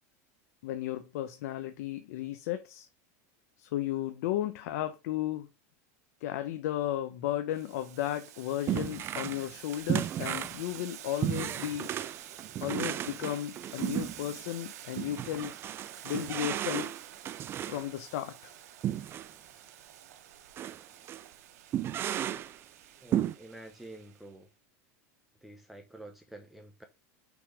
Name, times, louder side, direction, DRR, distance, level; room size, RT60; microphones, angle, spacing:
voice 1, 0.6-2.9 3.6-5.5 6.2-11.9 12.6-15.5 16.0-16.9 17.6-18.5, left 12 dB, 75° left, 0.7 m, -34 dB
Boiling, 7.5-24.3, right 12 dB, 85° right, 0.8 m, -49 dB
sound 1, 8.7-9.5 9.7-14.4 15.0-17.9 18.8-19.3 19.7-19.8 20.6-20.8 21.1-21.2 21.7-22.6 23.1-23.3, right 11 dB, 30° right, 0.4 m, -34 dB
voice 2, 23.0-24.5 25.4-26.8, right 1 dB, ahead, 0.8 m, -49 dB
6.2 x 3.4 x 4.9 m
supercardioid pair, 145°, 8 cm